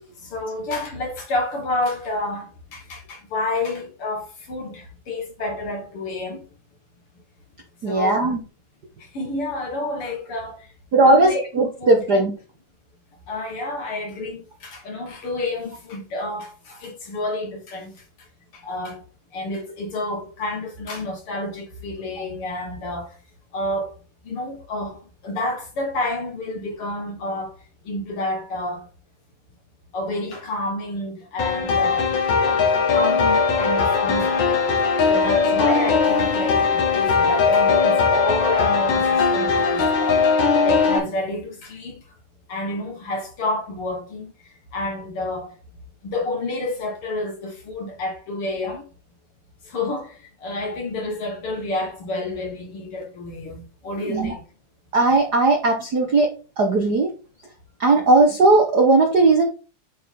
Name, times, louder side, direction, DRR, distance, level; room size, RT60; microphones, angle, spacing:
voice 1, 0.2-6.4 7.9-8.3 9.0-10.7 11.1-11.5 11.8-12.0 13.3-17.9 18.5-19.0 19.3-23.2 23.5-23.9 24.2-27.5 27.9-28.9 29.9-32.1 32.4-34.3 35.1-42.0 42.5-44.3 44.7-45.5 46.0-48.9 49.7-54.4 57.9-58.0, left 2 dB, 50° left, 2.2 m, -29 dB
voice 2, 7.8-8.4 10.9-12.3 54.1-54.3 54.9-57.1 57.8-59.4, right 2 dB, 55° right, 1.1 m, -17 dB
sound 1, 31.4-41.0, left 5 dB, 70° left, 3.0 m, -19 dB
9.2 x 4.6 x 3.7 m
omnidirectional pair, 3.6 m